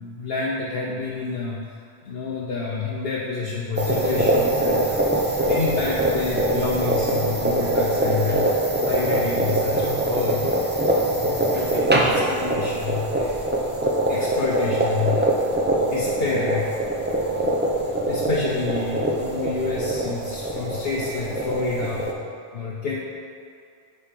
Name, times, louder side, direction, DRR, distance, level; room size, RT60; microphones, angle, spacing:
voice 1, 0.0-1.7 2.0-10.5 11.1-13.3 14.1-15.3 15.8-16.7 17.4-17.7 18.1-22.1 22.5-23.0, left 4 dB, 65° left, -4 dB, 0.9 m, -29 dB
sound 1, 3.8-22.1, right 1 dB, 15° right, 0.5 m, -23 dB
8.1 x 3.2 x 5.8 m, 2.4 s
omnidirectional pair, 1.1 m